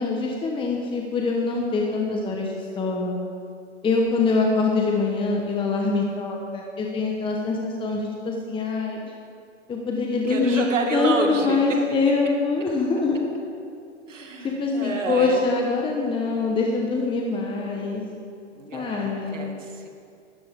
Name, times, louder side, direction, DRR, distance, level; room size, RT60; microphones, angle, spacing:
voice 1, 0.0-3.2 3.8-9.0 9.7-10.6 10.9-13.4 14.4-18.0 18.7-19.4, left 4 dB, 15° left, 0 dB, 1.2 m, -24 dB
voice 2, 10.3-11.6 14.1-15.4 18.5-19.9, right 3 dB, 85° right, 2 dB, 2.3 m, -29 dB
18.5 x 13.0 x 3.7 m, 2.3 s
hypercardioid pair, 120°, 37 cm